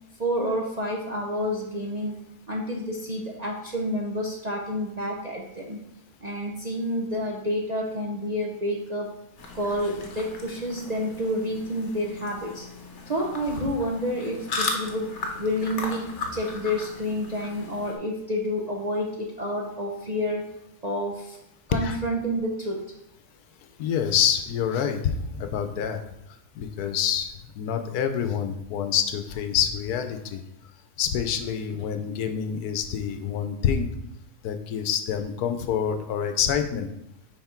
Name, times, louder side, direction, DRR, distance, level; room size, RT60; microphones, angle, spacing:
voice 1, 0.2-2.2 2.5-5.8 6.2-9.1 9.5-12.7 13.1-15.1 15.4-16.1 16.3-20.4 20.8-21.4 21.7-22.8, equal, 45° right, -1 dB, 0.6 m, -29 dB
sound 1, 9.4-18.0, left 3 dB, 55° left, 1.1 m, -36 dB
voice 2, 23.8-26.0 26.6-27.3 27.6-30.4 31.0-33.9 34.4-36.9, left 8 dB, 85° left, 8 dB, 1.2 m, -27 dB
5.7 x 5.1 x 4.4 m, 0.84 s
omnidirectional pair, 1.6 m